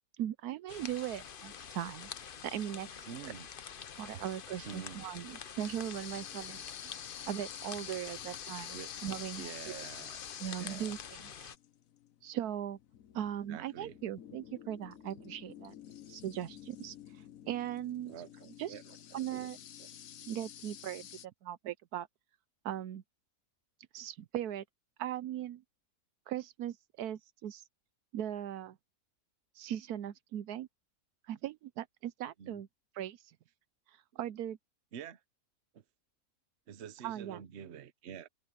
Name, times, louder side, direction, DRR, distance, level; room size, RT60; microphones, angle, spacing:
voice 1, 0.2-2.1 2.4-3.3 4.0-6.7 7.3-9.9 10.4-11.5 12.2-12.8 13.1-15.7 16.1-18.8 19.1-19.6 20.3-22.1 22.6-23.0 23.9-24.6 25.0-25.6 26.3-27.6 28.1-28.8 29.5-30.7 31.3-32.7 32.9-33.3 33.9-34.6 37.0-37.4, right 11 dB, 80° right, 1.2 m, -39 dB
sound 1, 0.7-11.6, left 7 dB, 45° left, 0.8 m, -47 dB
voice 2, 3.1-3.5 4.1-4.2 4.7-5.0 8.7-8.9 9.4-10.3 10.6-10.9 13.5-13.9 18.0-19.5 19.8-19.9 32.4-32.6 34.9-35.2 35.7-35.8 36.7-38.3, right 8 dB, 50° right, 1.1 m, -47 dB
sound 2, 5.6-21.3, left 10 dB, 65° left, 1.2 m, -49 dB
omnidirectional pair, 1.6 m